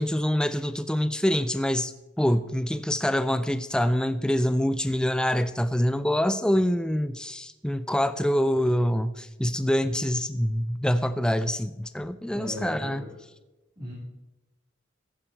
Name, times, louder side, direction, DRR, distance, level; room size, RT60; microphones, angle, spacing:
voice 1, 0.0-1.9 2.2-13.0, equal, 5° left, 12 dB, 0.3 m, -25 dB
voice 2, 12.3-13.2 13.8-13.9, left 1 dB, 20° right, -8 dB, 3.5 m, -37 dB
14.5 x 10.5 x 4.5 m, 1.0 s
head